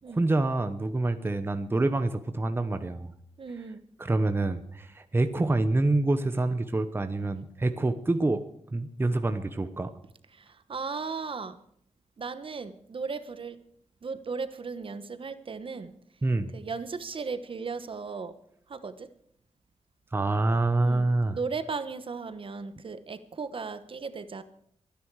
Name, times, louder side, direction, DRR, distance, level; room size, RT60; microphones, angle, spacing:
voice 1, 0.1-3.1 4.0-8.4 8.7-9.9 16.2-16.5 20.1-21.4, right 2 dB, 20° right, 9 dB, 0.9 m, -26 dB
voice 2, 3.4-3.8 10.3-11.6 12.2-13.6 14.0-15.9 16.5-18.3 18.7-19.1 20.8-24.4, right 4 dB, 50° right, 12 dB, 1.1 m, -36 dB
23.5 x 10.0 x 4.7 m, 0.70 s
wide cardioid pair, 140°, 12 cm